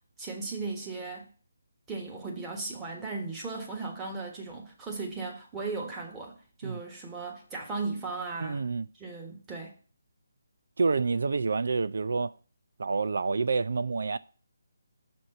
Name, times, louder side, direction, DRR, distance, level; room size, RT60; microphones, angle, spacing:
voice 1, 0.2-1.3 1.9-8.6 9.0-9.7, right 3 dB, 10° right, 1.4 m, -37 dB
voice 2, 8.4-8.9 10.8-12.3 12.8-14.2, right 4 dB, 65° right, 0.4 m, -28 dB
6.4 x 4.3 x 6.6 m
figure-of-eight pair, 160°, 0 cm